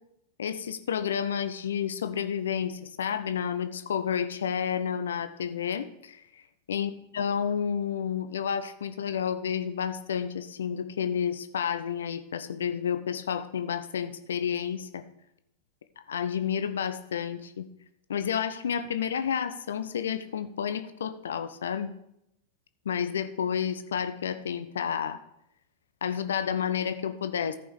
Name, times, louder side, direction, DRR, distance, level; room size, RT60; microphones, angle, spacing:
voice 1, 0.4-6.4 6.7-15.0 16.1-17.7 18.1-21.9 22.9-25.2 26.0-27.6, left 8 dB, 65° left, 10 dB, 0.5 m, -30 dB
14.5 x 5.4 x 4.7 m, 0.79 s
figure-of-eight pair, 90°, 0 cm